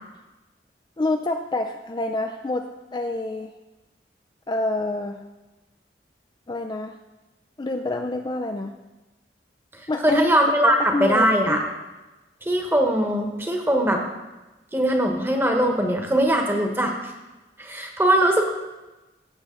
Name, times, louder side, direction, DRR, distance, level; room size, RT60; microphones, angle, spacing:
voice 1, 1.0-2.7 2.9-3.5 4.5-5.2 6.5-7.0 7.6-8.7 9.9-10.3 10.6-11.6, left 2 dB, 25° left, 5 dB, 0.4 m, -27 dB
voice 2, 10.0-11.6 12.4-14.0 14.7-16.9 17.6-18.4, right 1 dB, 15° right, 2 dB, 1.2 m, -21 dB
16.0 x 6.2 x 3.9 m, 1.1 s
head